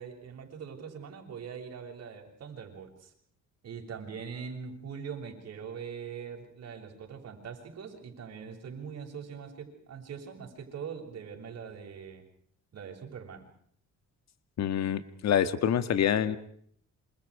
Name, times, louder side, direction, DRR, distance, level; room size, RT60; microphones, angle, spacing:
voice 1, 0.0-3.1 3.6-12.2 12.7-13.5, right 6 dB, 55° right, 3 dB, 7.3 m, -42 dB
voice 2, 14.6-16.4, left 9 dB, 60° left, 12 dB, 1.9 m, -26 dB
28.5 x 27.0 x 5.0 m, 0.64 s
cardioid pair, 120°, 30 cm